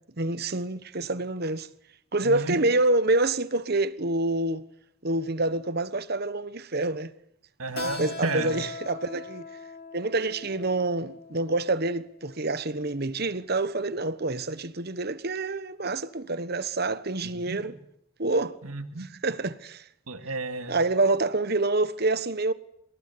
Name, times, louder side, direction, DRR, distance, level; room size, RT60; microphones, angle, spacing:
voice 1, 0.2-1.7 2.1-4.6 5.0-7.1 8.0-9.5 9.9-17.7 18.2-18.6 19.2-19.8 20.7-22.5, right 2 dB, 45° right, 1.2 m, -27 dB
voice 2, 2.2-2.6 7.6-8.6 17.2-17.7 18.6-19.1 20.1-20.7, right 3 dB, 90° right, 2.5 m, -32 dB
Keyboard (musical), 7.8-13.0, left 4 dB, 45° left, 4.5 m, -41 dB
26.5 x 21.5 x 9.6 m
head